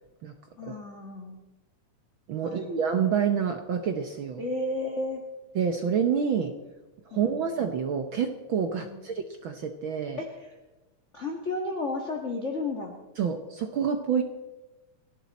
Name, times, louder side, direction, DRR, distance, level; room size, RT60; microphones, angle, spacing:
voice 1, 0.6-1.4 2.4-2.8 4.4-5.2 7.1-7.4 8.8-9.0 10.2-10.6 11.1-13.0, left 2 dB, 30° left, 1 dB, 1.5 m, -33 dB
voice 2, 2.3-4.4 5.5-6.5 7.1-10.2 13.2-14.2, right 7 dB, 70° right, 6 dB, 1.2 m, -28 dB
29.0 x 11.5 x 4.2 m, 1.1 s
omnidirectional pair, 3.5 m